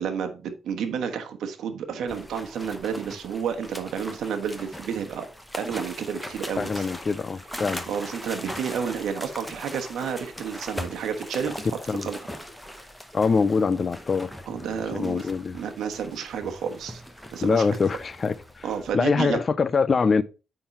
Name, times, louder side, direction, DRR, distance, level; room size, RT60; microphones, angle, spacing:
voice 1, 0.0-5.3 5.6-6.9 7.6-12.2 14.5-15.3 15.5-17.0 17.3-17.7 18.6-19.4, right 7 dB, 75° right, 1.1 m, -31 dB
sound 1, 2.1-18.9, equal, 5° left, 0.8 m, -40 dB
voice 2, 6.6-7.8 11.9-12.0 13.1-14.3 14.9-15.6 17.4-18.7 18.9-20.2, left 5 dB, 30° left, 0.3 m, -24 dB
8.6 x 3.8 x 4.2 m
cardioid pair, 145°, 0 cm